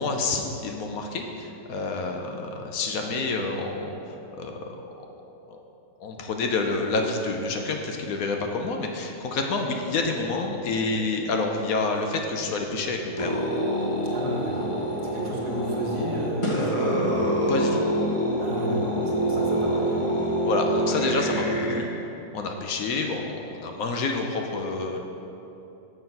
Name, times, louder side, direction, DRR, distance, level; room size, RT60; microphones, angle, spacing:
voice 1, 0.0-4.6 5.5-5.6 6.0-13.4 17.5-17.8 20.4-21.9 22.3-25.0, left 3 dB, 70° left, 3 dB, 1.1 m, -28 dB
sound 1, 13.2-21.8, equal, 25° left, 0.8 m, -26 dB
voice 2, 14.1-14.7 15.0-17.3 18.4-20.0, right 1 dB, 80° right, -2 dB, 1.8 m, -32 dB
6.8 x 6.0 x 5.3 m, 2.9 s
omnidirectional pair, 1.7 m